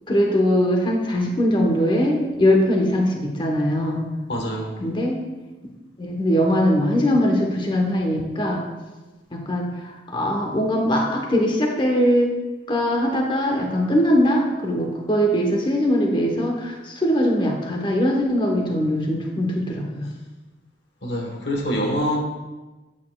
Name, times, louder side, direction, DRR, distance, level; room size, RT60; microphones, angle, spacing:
voice 1, 0.1-4.0 4.8-5.2 6.0-8.7 9.3-12.3 12.7-20.0, equal, 25° left, 1 dB, 1.0 m, -21 dB
voice 2, 4.3-4.7 21.0-22.2, equal, 65° left, 1 dB, 1.3 m, -25 dB
8.6 x 8.3 x 2.3 m, 1.2 s
head